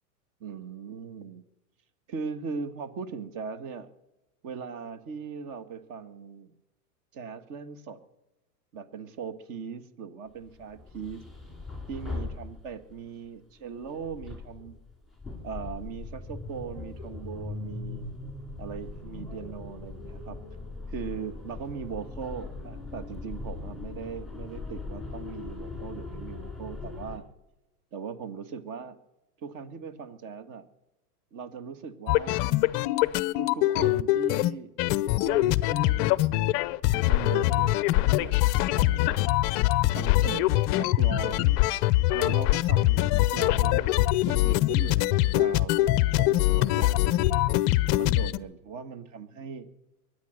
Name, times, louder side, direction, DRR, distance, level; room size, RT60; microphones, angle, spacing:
voice 1, 0.4-1.5 2.1-3.9 4.4-6.5 7.1-8.0 8.7-11.2 11.9-14.8 15.4-18.1 18.6-20.4 20.9-27.2 27.9-29.0 29.4-30.7 31.3-32.5 33.4-34.7 35.2-36.7 37.0-39.2 39.9-41.6 42.1-43.9 44.2-45.9 46.2-47.4 47.9-49.7, right 6 dB, 40° right, 11 dB, 1.7 m, -39 dB
sound 1, 10.4-13.1 13.8-27.2, left 3 dB, ahead, 4.4 m, -40 dB
sound 2, 32.1-34.5 34.8-48.4, left 17 dB, 35° left, 0.5 m, -23 dB
22.5 x 9.5 x 6.6 m, 0.99 s
hypercardioid pair, 125°, 47 cm